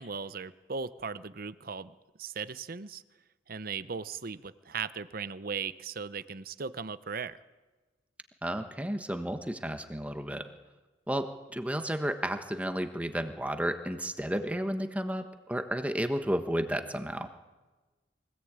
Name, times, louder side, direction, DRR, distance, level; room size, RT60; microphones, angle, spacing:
voice 1, 0.0-1.9 2.2-3.0 3.5-7.4, right 5 dB, 50° right, 14 dB, 0.8 m, -37 dB
voice 2, 8.4-10.5 11.1-17.3, equal, 10° right, 7 dB, 1.3 m, -32 dB
24.0 x 18.5 x 8.8 m, 1.2 s
head